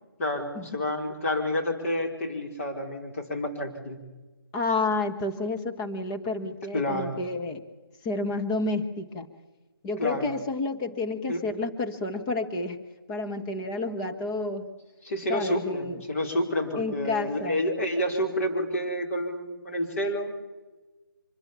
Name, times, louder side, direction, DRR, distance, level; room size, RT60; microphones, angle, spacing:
voice 1, 0.2-4.0 6.7-7.2 10.0-10.3 11.3-11.4 15.0-20.3, left 1 dB, 35° left, 2 dB, 4.6 m, -29 dB
voice 2, 4.5-7.6 8.0-9.3 9.8-12.8 13.1-14.7 15.3-16.0 16.7-17.6, left 3 dB, 15° left, 5 dB, 1.3 m, -30 dB
25.5 x 21.0 x 7.3 m, 1.2 s
figure-of-eight pair, 155°, 12 cm